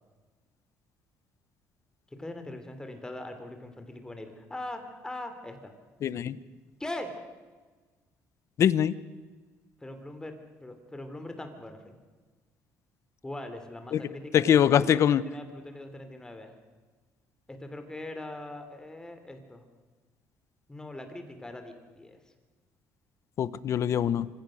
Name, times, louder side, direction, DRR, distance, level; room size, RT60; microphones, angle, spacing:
voice 1, 2.2-5.7 6.8-7.2 9.8-11.9 13.2-16.5 17.5-19.6 20.7-22.2, left 1 dB, 10° left, 7 dB, 3.0 m, -41 dB
voice 2, 6.0-6.4 8.6-8.9 13.9-14.0 14.3-15.2 23.4-24.3, left 9 dB, 55° left, 17 dB, 0.9 m, -23 dB
26.0 x 16.0 x 6.5 m, 1.3 s
cardioid pair, 110°, 6 cm